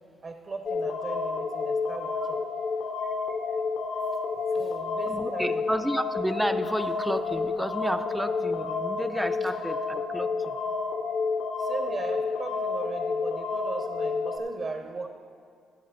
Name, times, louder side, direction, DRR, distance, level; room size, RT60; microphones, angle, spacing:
voice 1, 0.2-2.4 4.5-5.6 11.6-15.1, right 3 dB, 40° right, 6 dB, 0.7 m, -37 dB
sound 1, 0.7-14.4, left 4 dB, 65° left, 0.8 m, -30 dB
voice 2, 3.0-3.5 5.1-10.6, right 1 dB, 5° right, 10 dB, 0.4 m, -32 dB
14.0 x 7.5 x 3.9 m, 2.2 s
cardioid pair, 75°, 0 cm